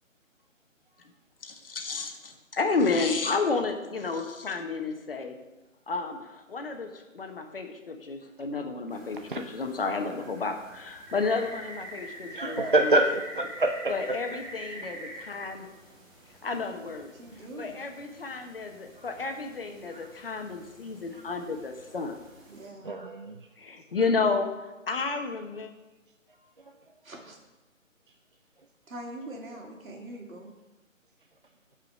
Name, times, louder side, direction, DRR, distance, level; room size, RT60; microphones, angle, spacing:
voice 1, 1.4-5.4 5.9-13.0 13.9-15.7 16.4-17.1 17.6-22.2 23.6-25.7, left 4 dB, 45° left, 5 dB, 1.0 m, -31 dB
sound 1, 8.9-22.7, equal, 15° right, 2.8 m, -47 dB
voice 2, 12.3-14.2 19.9-20.0 22.9-23.3, right 2 dB, 40° right, 5 dB, 0.4 m, -26 dB
voice 3, 17.1-17.8 22.5-22.9 27.0-27.4 28.9-30.5, right 1 dB, 80° right, 0 dB, 2.6 m, -43 dB
8.6 x 5.0 x 6.0 m, 1.1 s
figure-of-eight pair, 160°, 40 cm